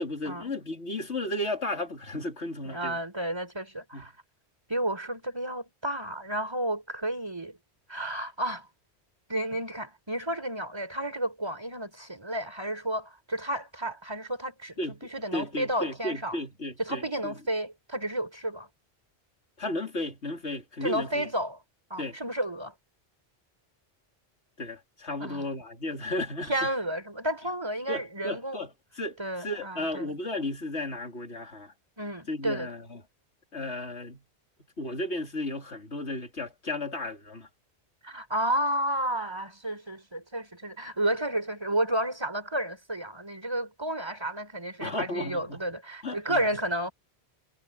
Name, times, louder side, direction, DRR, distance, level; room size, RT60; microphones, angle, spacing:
voice 1, 0.0-3.0 3.9-4.1 14.8-17.4 19.6-21.3 22.0-22.2 24.6-26.7 27.9-31.7 32.3-33.0 33.5-34.2 34.8-37.5 44.8-45.6 46.0-46.6, left 1 dB, 85° left, 3.6 m, -34 dB
voice 2, 2.6-4.1 4.7-7.6 7.9-8.7 9.3-14.8 15.1-16.4 16.8-18.7 20.8-21.6 21.9-22.7 25.2-25.4 26.5-28.6 29.2-30.1 32.0-32.7 38.0-46.9, right 1 dB, 25° right, 3.8 m, -31 dB
omnidirectional pair, 1.1 m